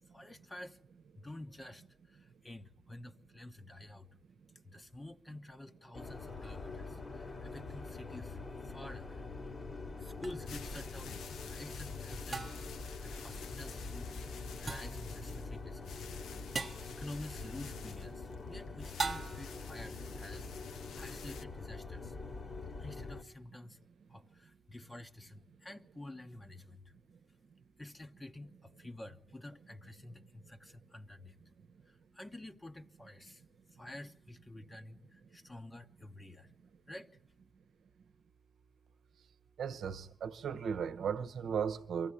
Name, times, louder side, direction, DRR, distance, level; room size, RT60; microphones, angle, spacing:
voice 1, 0.0-0.9 1.1-4.2 4.5-22.5 22.8-27.0 27.3-31.5 31.8-37.4, left 1 dB, 25° left, 1.0 m, -50 dB
sound 1, 5.9-23.2, left 3 dB, 45° left, 1.9 m, -44 dB
sound 2, 10.2-10.3 12.3-12.8 14.7-15.0 16.5-16.9 19.0-19.6, right 4 dB, 40° right, 0.8 m, -38 dB
Plastic Bag, 10.4-21.4, left 6 dB, 85° left, 0.9 m, -51 dB
voice 2, 39.6-42.1, right 7 dB, 75° right, 0.8 m, -36 dB
23.5 x 15.0 x 9.9 m
cardioid pair, 55°, 0 cm